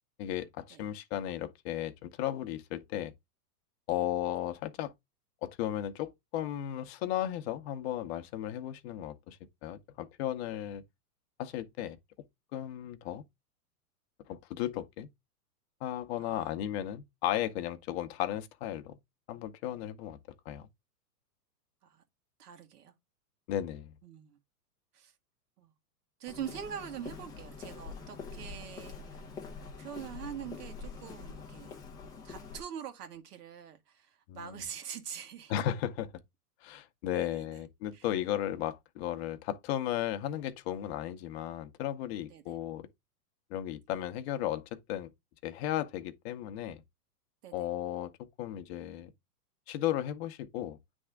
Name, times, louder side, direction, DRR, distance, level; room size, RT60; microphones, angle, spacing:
voice 1, 0.2-3.1 3.9-4.9 5.4-10.8 11.4-12.0 12.5-13.2 14.3-15.1 15.8-19.0 19.3-20.2 20.5-20.7 23.5-23.9 34.3-34.6 35.5-36.1 36.6-42.9 43.5-45.1 45.4-46.8 47.5-49.1 49.7-50.8, left 12 dB, 40° left, 0.8 m, -35 dB
voice 2, 22.4-22.9 24.0-24.4 24.9-25.1 25.6-25.7 26.2-29.2 29.6-31.8 32.2-35.5 37.1-37.6 37.9-38.1 42.3-42.6 47.4-47.5, right 9 dB, 70° right, 1.8 m, -44 dB
Walk footsteps, 26.3-32.6, left 5 dB, 10° left, 0.5 m, -45 dB
9.2 x 3.5 x 3.3 m
hypercardioid pair, 135°, 47 cm